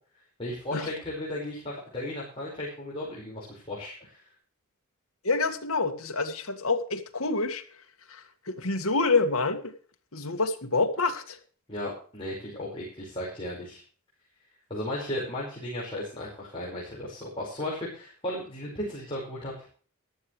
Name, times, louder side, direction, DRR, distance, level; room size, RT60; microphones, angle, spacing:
voice 1, 0.4-4.2 11.7-13.8 14.7-19.7, left 1 dB, 25° left, -6 dB, 5.2 m, -35 dB
voice 2, 5.2-7.6 8.1-9.7 10.1-11.4, left 3 dB, 70° left, 6 dB, 1.9 m, -27 dB
14.0 x 12.5 x 3.3 m, 0.41 s
head